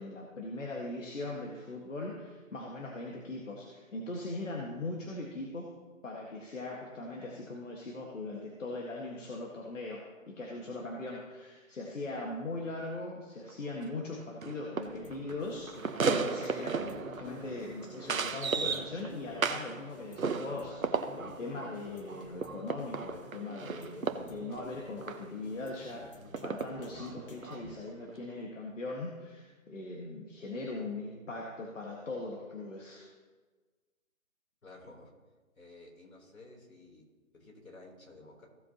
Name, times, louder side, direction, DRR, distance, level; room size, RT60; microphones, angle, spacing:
voice 1, 0.0-5.7 6.0-26.1 26.4-33.1, left 2 dB, 65° left, -2 dB, 1.8 m, -40 dB
sound 1, 13.5-13.6 13.8-14.0 14.4-19.8 20.2-25.3 26.3-27.6 28.1-28.2, right 5 dB, 75° right, 1.1 m, -35 dB
sound 2, 14.8-27.7, left 3 dB, 40° left, 1.3 m, -52 dB
voice 2, 34.6-35.1 35.6-37.0 37.3-38.5, left 2 dB, 80° left, 0 dB, 3.7 m, -53 dB
16.5 x 7.6 x 3.0 m, 1.3 s
figure-of-eight pair, 160°, 41 cm